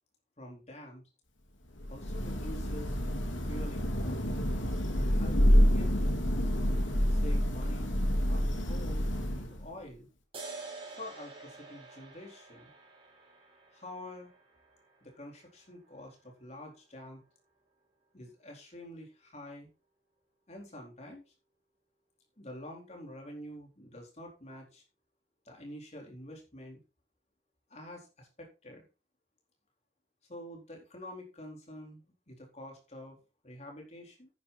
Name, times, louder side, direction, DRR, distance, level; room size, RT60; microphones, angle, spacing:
voice 1, 0.4-1.1 1.9-3.0 3.4-4.2 5.0-6.0 7.1-8.0 8.3-10.1 11.0-12.7 13.7-14.3 15.0-17.2 18.1-19.7 20.5-21.2 22.4-24.8 25.4-26.8 27.7-28.9 30.3-33.2 33.4-34.3, left 1 dB, 35° left, 1 dB, 4.1 m, -47 dB
Thunder / Rain, 1.7-9.7, equal, 80° left, 2.8 m, -28 dB
sound 1, 10.3-17.3, right 3 dB, 30° right, 4.7 m, -49 dB
10.0 x 9.9 x 4.2 m, 0.31 s
head